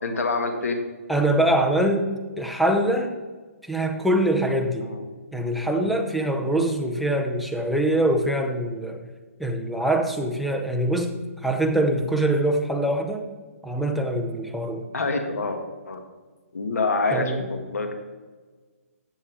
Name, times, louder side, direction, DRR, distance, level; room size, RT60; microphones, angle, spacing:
voice 1, 0.0-0.8 4.8-5.0 14.9-15.6 15.9-16.0 16.5-17.9, left 3 dB, 80° left, 5 dB, 2.1 m, -26 dB
voice 2, 1.1-3.2 3.6-4.9 5.3-9.0 9.4-11.2 11.4-13.3 13.6-14.9 17.1-17.5, right 1 dB, ahead, 3 dB, 0.5 m, -23 dB
13.5 x 8.5 x 3.6 m, 1.4 s
hypercardioid pair, 165°, 8 cm